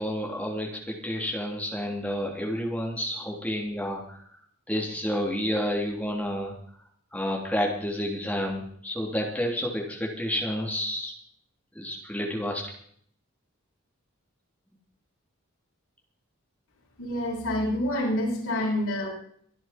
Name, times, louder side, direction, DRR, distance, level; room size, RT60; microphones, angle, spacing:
voice 1, 0.0-4.2 4.7-6.5 7.1-11.1 11.7-12.7 18.6-18.7, equal, 5° left, -1 dB, 3.4 m, -30 dB
voice 2, 17.0-19.1, left 1 dB, 80° left, -5 dB, 8.0 m, -27 dB
25.0 x 10.0 x 4.5 m, 0.62 s
head